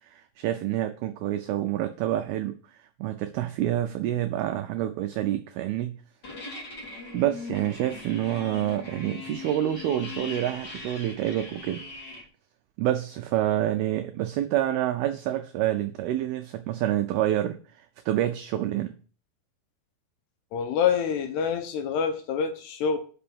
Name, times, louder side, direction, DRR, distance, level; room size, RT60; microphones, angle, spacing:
voice 1, 0.0-6.0 7.1-12.2 12.8-18.9, right 13 dB, 90° right, 7 dB, 2.2 m, -28 dB
sound 1, 6.2-12.2, left 3 dB, 40° left, 1.6 m, -40 dB
voice 2, 20.5-23.0, left 7 dB, 75° left, 7 dB, 2.6 m, -26 dB
6.0 x 5.7 x 7.0 m, 0.40 s
omnidirectional pair, 5.2 m